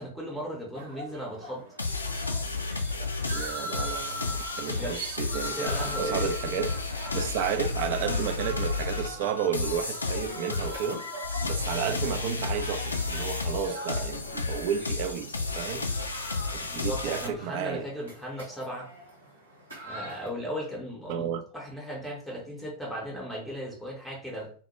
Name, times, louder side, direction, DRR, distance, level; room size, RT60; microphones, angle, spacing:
voice 1, 0.0-1.7 4.7-5.1 5.5-6.6 15.8-15.9 16.7-18.9 19.8-24.5, equal, ahead, 0.7 m, -37 dB
sound 1, 0.7-20.3, right 1 dB, 75° right, 0.9 m, -42 dB
sound 2, 1.8-17.3, left 3 dB, 75° left, 0.3 m, -32 dB
voice 2, 3.3-6.7 7.1-11.1 11.5-15.9 16.7-17.8 21.1-21.4, right 8 dB, 50° right, 0.3 m, -32 dB
2.1 x 2.0 x 2.9 m
figure-of-eight pair, 90°, 0 cm